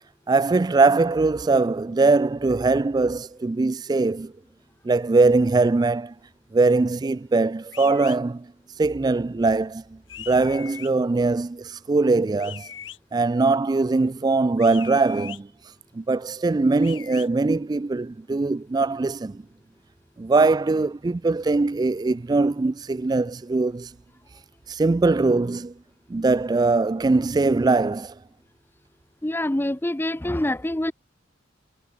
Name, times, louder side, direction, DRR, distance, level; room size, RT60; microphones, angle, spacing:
voice 1, 0.3-4.3 4.8-6.1 6.5-8.5 8.8-10.0 10.3-12.7 13.1-15.5 15.9-19.4 20.2-23.9 24.7-25.7 26.1-28.1, right 3 dB, 20° right, 0.3 m, -21 dB
sound 1, 7.7-8.2 10.1-10.9 12.4-13.0 14.6-15.4 16.8-17.3, left 10 dB, 80° left, 5.9 m, -40 dB
voice 2, 29.2-30.9, left 1 dB, 10° left, 0.6 m, -25 dB
head